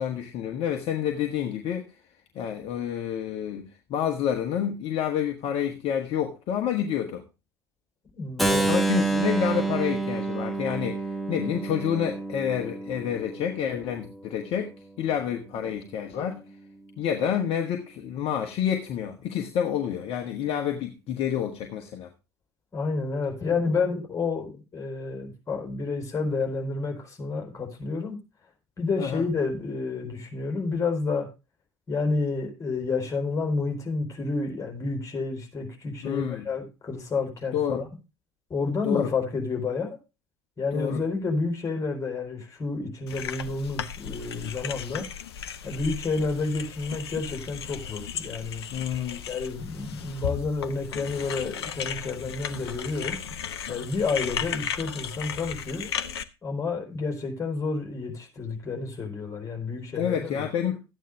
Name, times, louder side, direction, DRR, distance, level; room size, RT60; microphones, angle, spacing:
voice 1, 0.0-1.9 2.3-7.2 8.7-14.7 15.0-16.5 17.0-22.1 29.0-29.2 36.0-36.5 37.5-37.8 38.8-39.1 40.7-41.0 48.7-49.2 59.9-60.8, left 9 dB, 45° left, 1.5 m, -28 dB
voice 2, 8.1-8.7 22.7-28.2 28.8-31.3 31.9-37.9 38.5-40.0 40.6-45.1 45.6-48.6 49.3-53.2 53.7-55.9 56.4-60.4, left 4 dB, 25° left, 4.4 m, -30 dB
Keyboard (musical), 8.4-14.2, right 3 dB, ahead, 1.3 m, -28 dB
sound 1, 43.1-56.2, left 8 dB, 70° left, 0.8 m, -35 dB
13.5 x 9.2 x 3.3 m
figure-of-eight pair, 70°, 14 cm